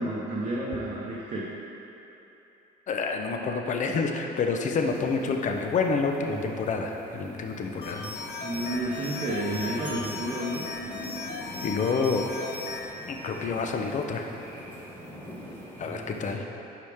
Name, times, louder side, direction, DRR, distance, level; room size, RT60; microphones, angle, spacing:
voice 1, 0.0-1.5 6.3-6.5 8.4-10.6 15.8-16.4, right 1 dB, 45° right, -6 dB, 1.0 m, -31 dB
voice 2, 2.9-8.0 11.6-12.3 13.1-14.4 15.8-16.4, left 4 dB, 45° left, 3 dB, 0.7 m, -28 dB
sound 1, 4.7-16.4, left 1 dB, 10° left, 1.6 m, -43 dB
sound 2, 7.8-12.8, left 4 dB, 65° left, 1.1 m, -37 dB
sound 3, 9.8-11.9, right 1 dB, 10° right, 1.6 m, -48 dB
10.5 x 4.8 x 3.5 m, 3.0 s
cardioid pair, 110°, 17 cm